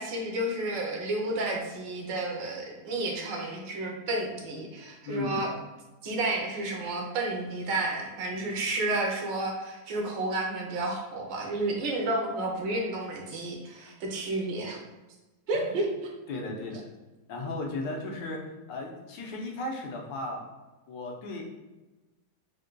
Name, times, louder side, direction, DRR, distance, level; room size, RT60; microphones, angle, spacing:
voice 1, 0.0-5.5 6.0-14.8 15.5-15.9, right 2 dB, 80° right, 0 dB, 1.4 m, -31 dB
voice 2, 5.1-5.4 15.5-15.7 16.3-16.8 17.3-18.4 18.7-20.4 20.9-21.4, left 2 dB, 90° left, 0 dB, 1.5 m, -35 dB
4.4 x 2.2 x 3.8 m, 1.1 s
omnidirectional pair, 2.0 m